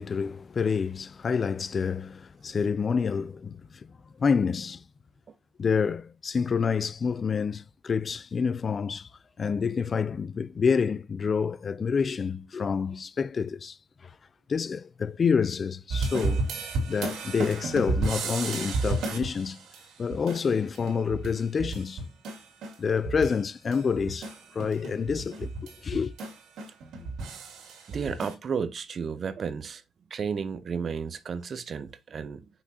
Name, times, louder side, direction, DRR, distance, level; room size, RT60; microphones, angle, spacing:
voice 1, 0.0-3.9 4.2-4.8 5.6-9.1 9.4-14.2 14.5-16.4 16.9-19.6 20.0-22.0 22.8-26.1, left 6 dB, 35° left, 0.3 m, -28 dB
sound 1, 15.9-23.4 23.7-28.3, right 3 dB, 80° right, 2.5 m, -33 dB
voice 2, 27.9-29.8 30.1-32.5, right 6 dB, 45° right, 0.7 m, -33 dB
6.0 x 6.0 x 2.7 m
cardioid pair, 135°, 0 cm